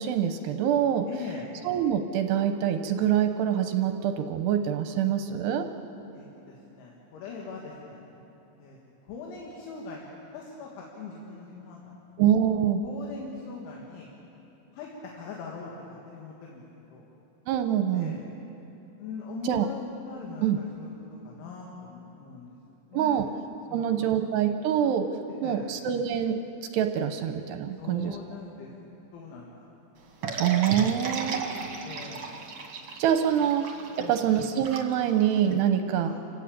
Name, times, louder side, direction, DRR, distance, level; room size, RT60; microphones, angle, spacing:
voice 1, 0.0-1.1 1.7-5.7 12.2-12.8 17.5-18.2 19.5-19.7 20.4-20.6 22.9-23.3 23.7-25.1 25.4-26.4 26.7-28.1 30.4-31.5 33.0-33.7 34.0-36.1, right 9 dB, 80° right, 7 dB, 2.7 m, -25 dB
voice 2, 1.1-1.5 6.1-8.2 8.6-8.8 9.0-11.9 12.5-12.6 12.8-14.1 14.7-17.1 17.9-18.3 19.0-23.4 23.7-24.2 25.4-25.7 27.8-29.5 30.2-30.6 31.8-32.4 33.3-33.6 34.0-34.3 36.0-36.1, left 4 dB, 85° left, -2 dB, 4.3 m, -42 dB
sound 1, 30.2-35.5, right 4 dB, 45° right, 2.0 m, -35 dB
28.5 x 15.5 x 8.7 m, 2.9 s
omnidirectional pair, 5.3 m